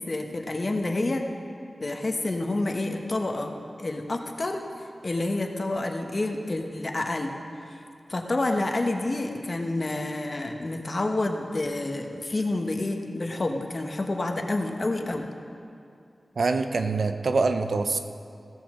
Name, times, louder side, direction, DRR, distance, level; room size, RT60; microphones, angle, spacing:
voice 1, 0.1-1.2 1.8-4.6 5.0-7.3 8.1-15.3, left 2 dB, 40° left, 3 dB, 1.1 m, -28 dB
voice 2, 16.4-18.0, right 3 dB, 75° right, 7 dB, 0.7 m, -24 dB
15.5 x 13.5 x 3.8 m, 2.5 s
wide cardioid pair, 105°, 0 cm